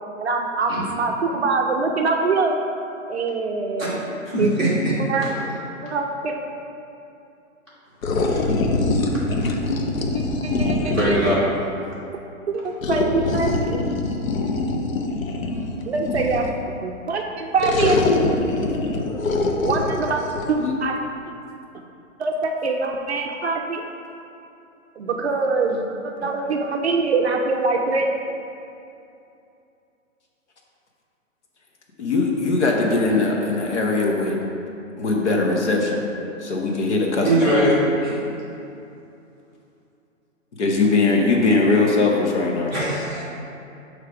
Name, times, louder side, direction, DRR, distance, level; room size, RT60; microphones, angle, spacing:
voice 1, 0.2-2.6 3.1-4.0 4.4-5.3 5.8-6.3 10.4-11.2 12.5-13.8 15.9-18.0 19.6-20.2 20.5-21.0 22.2-23.8 25.0-28.1, right 3 dB, 55° right, 2 dB, 0.5 m, -24 dB
voice 2, 4.3-4.7 5.2-5.3 8.3-8.5 10.8-11.4 37.2-38.2 42.7-43.2, right 1 dB, 5° left, -16 dB, 1.4 m, -21 dB
sound 1, 8.0-11.4 12.8-16.6 17.6-20.5, left 2 dB, 85° left, 0.8 m, -23 dB
voice 3, 32.0-34.4 35.0-36.0 36.4-37.5 40.6-42.7, left 3 dB, 60° left, 0 dB, 1.0 m, -20 dB
6.3 x 3.3 x 4.8 m, 2.7 s
hypercardioid pair, 175°, 40 cm